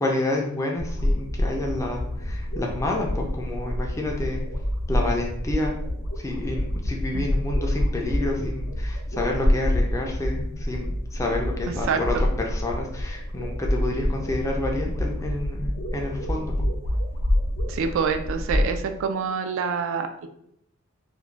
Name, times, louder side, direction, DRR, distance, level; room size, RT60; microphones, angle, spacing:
voice 1, 0.0-4.4 4.9-5.8 6.2-16.7, left 2 dB, 15° left, 0 dB, 0.4 m, -29 dB
sound 1, 0.8-18.7, left 1 dB, 65° left, 0.6 m, -27 dB
voice 2, 17.7-20.3, right 5 dB, 60° right, 6 dB, 0.3 m, -26 dB
2.4 x 2.1 x 3.2 m, 0.74 s
head